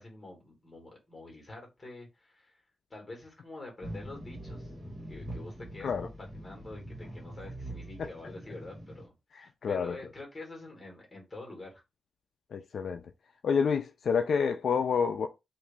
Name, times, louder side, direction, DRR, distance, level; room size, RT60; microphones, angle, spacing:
voice 1, 0.0-2.6 2.9-4.7 5.1-6.1 6.3-11.8, left 2 dB, 20° left, 1.7 m, -46 dB
sound 1, 3.8-9.1, right 1 dB, 35° right, 1.6 m, -43 dB
voice 2, 8.0-8.3 9.3-10.0 12.5-13.1 13.4-15.3, left 6 dB, 65° left, 0.3 m, -29 dB
2.9 x 2.6 x 3.5 m
cardioid pair, 115°, 0 cm